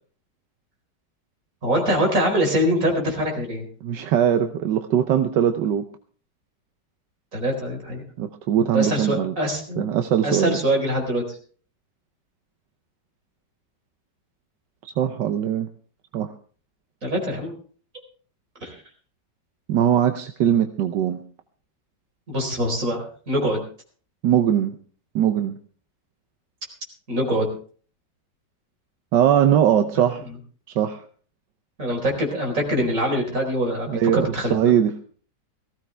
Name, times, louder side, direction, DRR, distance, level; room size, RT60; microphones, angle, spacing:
voice 1, 1.6-3.7 7.3-8.0 8.6-9.8 10.2-11.4 17.0-17.5 18.6-18.7 22.3-23.6 27.1-27.5 31.8-34.6, equal, 45° right, 0 dB, 4.8 m, -24 dB
voice 2, 3.8-5.9 8.2-9.3 9.8-10.6 14.8-15.7 16.1-16.3 19.7-21.2 24.2-24.8 25.1-25.6 29.1-30.2 30.7-31.0 33.9-35.0, right 9 dB, 80° right, 7 dB, 1.5 m, -21 dB
18.5 x 15.5 x 3.4 m, 0.43 s
omnidirectional pair, 1.9 m